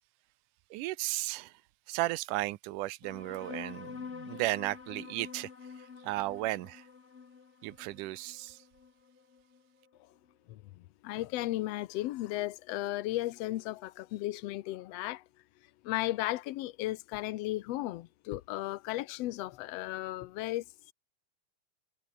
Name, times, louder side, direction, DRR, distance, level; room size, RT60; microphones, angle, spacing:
voice 1, 0.7-1.6 1.9-5.5 5.8-6.9 7.6-8.6, right 18 dB, 85° right, 2.2 m, -35 dB
sound 1, 3.0-10.0, left 5 dB, 65° left, 0.7 m, -47 dB
voice 2, 10.5-15.2 15.8-20.6, left 16 dB, 80° left, 1.4 m, -35 dB
omnidirectional pair, 3.8 m